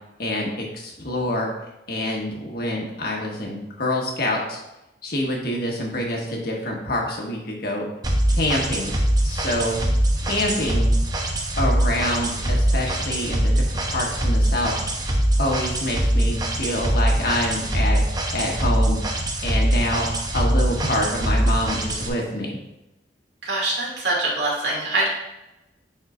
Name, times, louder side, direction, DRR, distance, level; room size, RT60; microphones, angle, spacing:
voice 1, 0.2-1.5 1.9-4.6 5.0-7.9 8.3-8.9 9.2-9.8 10.2-10.9 11.6-14.7 15.4-18.0 18.3-19.0 19.4-22.6, left 1 dB, 60° left, -1 dB, 1.5 m, -26 dB
sound 1, 8.0-22.1, right 1 dB, 25° right, 0.8 m, -22 dB
voice 2, 23.4-25.1, right 2 dB, 75° right, -4 dB, 2.4 m, -24 dB
10.0 x 4.3 x 2.5 m, 0.92 s
head